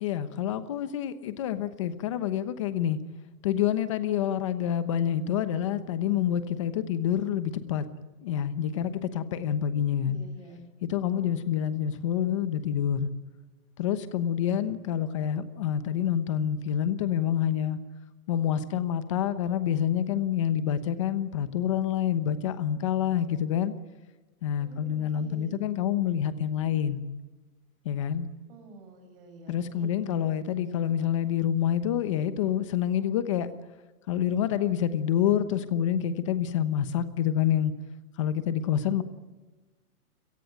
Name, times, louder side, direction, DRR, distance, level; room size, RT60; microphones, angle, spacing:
voice 1, 0.0-3.0 3.4-7.9 8.2-10.2 10.8-13.1 13.8-17.8 18.3-23.7 24.4-27.1 27.8-28.3 29.5-33.5 34.1-37.7 38.2-39.0, left 10 dB, 20° left, 12 dB, 1.0 m, -27 dB
voice 2, 9.6-10.6 11.1-11.5 24.6-25.6 28.5-31.0 38.8-39.0, right 2 dB, 40° right, 5 dB, 7.5 m, -49 dB
29.5 x 18.0 x 9.2 m, 1.2 s
hypercardioid pair, 180°, 45 cm